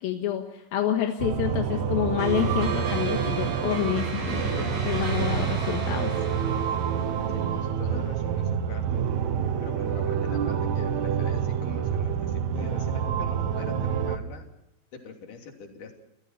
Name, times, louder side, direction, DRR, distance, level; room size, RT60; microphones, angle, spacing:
voice 1, 0.0-6.1, left 9 dB, 80° left, 4 dB, 3.3 m, -28 dB
sound 1, 1.2-14.2, right 7 dB, 60° right, 2.3 m, -27 dB
sound 2, 2.2-7.7, right 2 dB, 75° right, 6.4 m, -35 dB
voice 2, 7.3-8.9 9.6-14.5 14.9-16.0, left 5 dB, 60° left, 3 dB, 4.5 m, -44 dB
29.0 x 15.5 x 5.8 m, 0.88 s
omnidirectional pair, 4.2 m